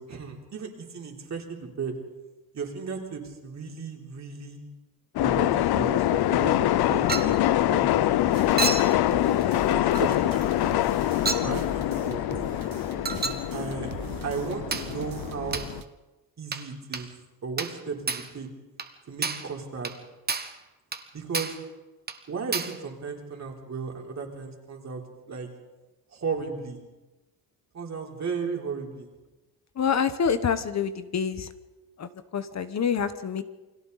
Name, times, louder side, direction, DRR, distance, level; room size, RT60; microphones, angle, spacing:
voice 1, 0.0-1.9 2.5-4.6 5.2-8.2 9.1-10.5 11.4-12.3 13.5-13.9 14.2-15.6 16.4-17.1 17.4-18.5 19.1-19.9 21.1-21.5 22.3-25.0 25.3-25.5 26.1-26.8 27.7-29.1, right 5 dB, 45° right, 0 dB, 3.8 m, -35 dB
sound 1, 5.2-15.8, left 13 dB, 90° left, 0.7 m, -25 dB
Chink clink, 7.1-7.4 8.6-8.9 9.9-10.1 11.3-11.5 13.0-13.5 14.7-14.9 15.5-15.7 16.5-16.7 16.9-17.1 17.6-17.8 18.1-18.3 18.8-18.9 19.2-19.5 19.8-20.0 20.3-20.6 20.9-21.1 21.3-21.6 22.1-22.2 22.5-22.8, right 4 dB, 25° right, 1.3 m, -30 dB
sound 2, 8.3-15.9, right 9 dB, 60° right, 1.2 m, -42 dB
voice 2, 29.8-31.5 32.0-33.4, left 7 dB, 45° left, 11 dB, 1.1 m, -27 dB
29.0 x 21.5 x 4.1 m, 1.1 s
cardioid pair, 125°, 37 cm